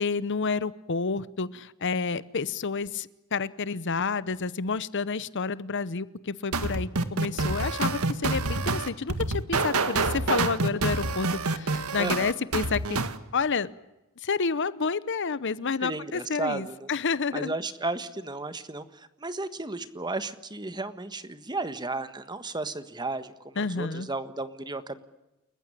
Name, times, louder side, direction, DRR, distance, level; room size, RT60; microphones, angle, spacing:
voice 1, 0.0-13.0 13.3-13.7 14.2-17.5 23.6-24.1, left 4 dB, 55° left, 17 dB, 0.8 m, -29 dB
sound 1, 6.5-13.2, right 3 dB, 90° right, 1.8 m, -27 dB
voice 2, 12.0-12.3 15.8-16.9 17.3-25.0, right 2 dB, 20° right, 12 dB, 1.5 m, -34 dB
29.5 x 15.0 x 10.0 m, 0.97 s
head